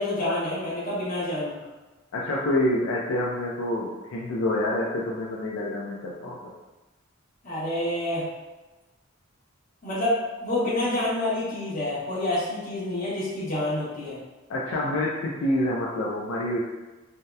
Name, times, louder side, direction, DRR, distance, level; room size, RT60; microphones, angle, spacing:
voice 1, 0.0-1.6 7.4-8.2 9.8-14.2, left 1 dB, 40° left, -9 dB, 0.9 m, -28 dB
voice 2, 2.1-6.5 14.5-16.6, left 1 dB, 75° left, -3 dB, 0.4 m, -27 dB
2.7 x 2.0 x 2.2 m, 1.2 s
head